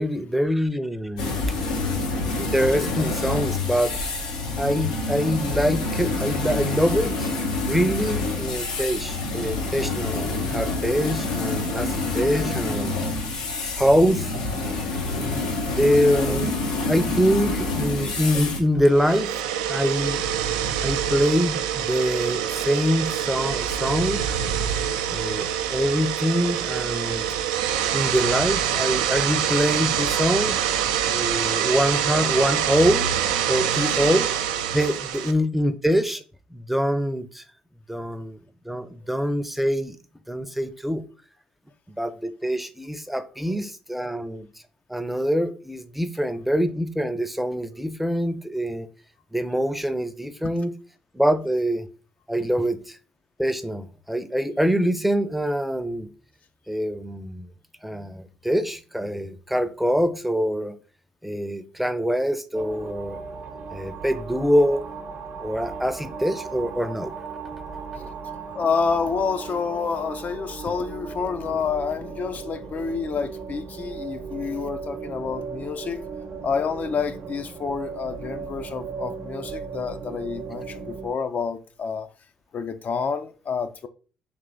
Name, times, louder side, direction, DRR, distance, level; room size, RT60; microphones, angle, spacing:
voice 1, 0.0-1.6 2.4-3.9 4.6-7.3 7.7-13.1 13.7-14.3 15.1-16.5 16.9-19.3 19.7-20.2 20.8-24.4 25.1-27.3 27.9-30.8 31.1-33.1 33.5-34.3 34.7-36.2 36.5-37.4 37.9-38.4 38.6-40.0 40.3-41.0 41.9-44.5 44.9-48.9 49.3-50.7 51.1-51.9 52.3-53.0 53.4-56.1 56.7-57.5 57.8-60.7 61.2-63.2 63.7-64.8 65.4-67.1, equal, 5° right, 0.5 m, -24 dB
sound 1, 1.2-18.6, left 3 dB, 90° left, 0.8 m, -27 dB
voice 2, 15.5-15.9 33.7-34.1 37.9-38.0 43.4-43.5 68.5-76.0 76.4-82.1 82.5-83.9, left 5 dB, 50° left, 0.4 m, -29 dB
sound 2, 18.8-35.3, right 9 dB, 85° right, 0.3 m, -25 dB
sound 3, 62.5-81.1, right 5 dB, 55° right, 0.7 m, -37 dB
3.4 x 2.9 x 3.9 m
hypercardioid pair, 50°, 4 cm